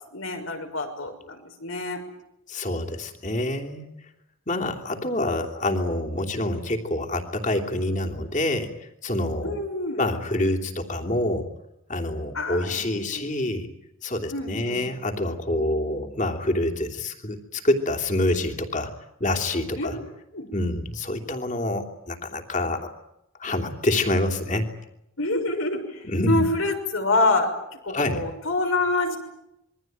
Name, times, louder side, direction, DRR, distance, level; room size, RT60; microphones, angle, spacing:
voice 1, 0.1-2.0 9.4-10.0 12.3-13.3 14.3-14.9 19.8-19.9 20.3-20.5 25.2-29.2, left 2 dB, 85° left, 4 dB, 6.3 m, -27 dB
voice 2, 2.5-3.9 4.5-9.6 10.0-11.5 11.9-13.7 14.0-18.9 19.2-20.0 20.5-22.9 23.4-24.7 26.0-26.5 27.9-28.2, left 1 dB, 35° left, 3 dB, 3.0 m, -26 dB
27.0 x 22.5 x 9.3 m, 0.83 s
head